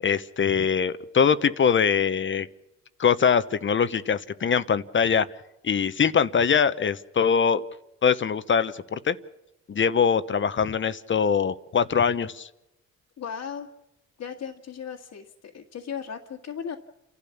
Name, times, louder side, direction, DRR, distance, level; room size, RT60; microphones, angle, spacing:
voice 1, 0.0-2.5 3.0-5.3 5.6-7.6 8.0-9.2 9.7-12.5, left 6 dB, 40° left, 14 dB, 1.0 m, -23 dB
voice 2, 13.2-13.7 14.2-16.8, left 7 dB, 65° left, -1 dB, 1.9 m, -36 dB
29.5 x 12.0 x 7.2 m, 0.92 s
cardioid pair, 90°, 30 cm